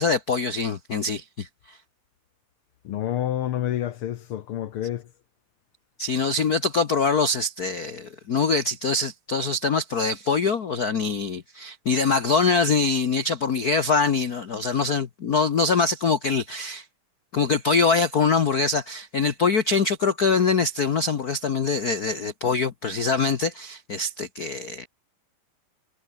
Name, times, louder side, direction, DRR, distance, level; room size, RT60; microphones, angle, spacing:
voice 1, 0.0-1.8 6.0-16.8 17.3-24.9, left 4 dB, 90° left, 0.8 m, -24 dB
voice 2, 2.8-5.1, left 11 dB, 70° left, 1.3 m, -28 dB
omnidirectional pair, 3.6 m